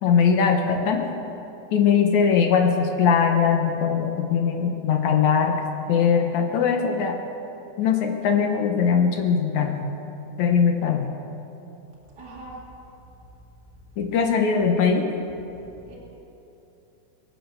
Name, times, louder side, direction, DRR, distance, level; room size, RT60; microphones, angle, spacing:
voice 1, 0.0-1.1 1.7-7.2 7.8-9.9 10.4-11.1 14.0-15.1, left 6 dB, 70° left, 4 dB, 2.0 m, -21 dB
voice 2, 12.1-12.8 15.6-16.0, right 1 dB, 30° right, -5 dB, 2.3 m, -42 dB
23.5 x 8.0 x 6.8 m, 2.9 s
omnidirectional pair, 4.2 m